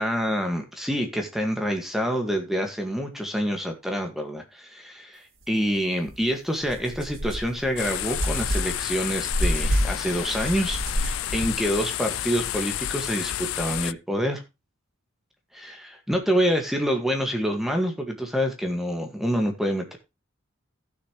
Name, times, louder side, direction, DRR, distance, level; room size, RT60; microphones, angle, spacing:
voice 1, 0.0-14.4 15.5-20.0, equal, ahead, 4 dB, 1.8 m, -27 dB
sound 1, 6.1-6.2 6.6-11.7, equal, 75° right, 2.9 m, -29 dB
sound 2, 7.8-13.9, left 12 dB, 80° left, 0.4 m, -30 dB
15.5 x 6.6 x 3.1 m, 0.26 s
head